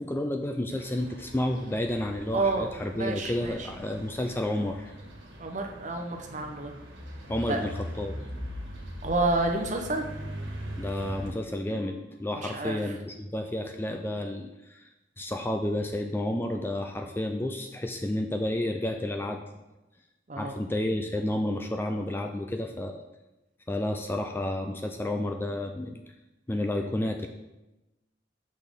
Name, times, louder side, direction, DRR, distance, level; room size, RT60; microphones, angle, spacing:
voice 1, 0.0-4.9 7.3-8.1 10.8-14.9 15.2-19.4 20.4-23.0 23.7-26.0 26.5-27.3, left 1 dB, 10° left, 4 dB, 0.3 m, -31 dB
sound 1, 0.7-11.3, equal, 70° right, 1.5 m, -41 dB
voice 2, 2.3-2.7 2.9-3.7 5.4-6.7 7.5-7.6 9.0-10.1 12.4-12.8 20.3-20.6, right 2 dB, 40° right, 3 dB, 0.7 m, -29 dB
6.5 x 6.0 x 3.6 m, 1.0 s
head